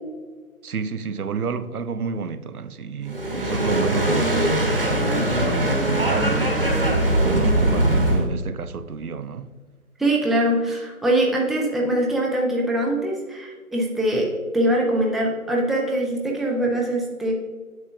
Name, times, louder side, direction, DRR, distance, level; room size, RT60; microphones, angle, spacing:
voice 1, 0.6-9.5, right 6 dB, 85° right, 0.6 m, -30 dB
sound 1, 3.1-8.3, right 1 dB, 40° right, 1.0 m, -21 dB
voice 2, 10.0-17.3, right 1 dB, ahead, 0.5 m, -23 dB
9.1 x 6.7 x 2.3 m
figure-of-eight pair, 170°, 43 cm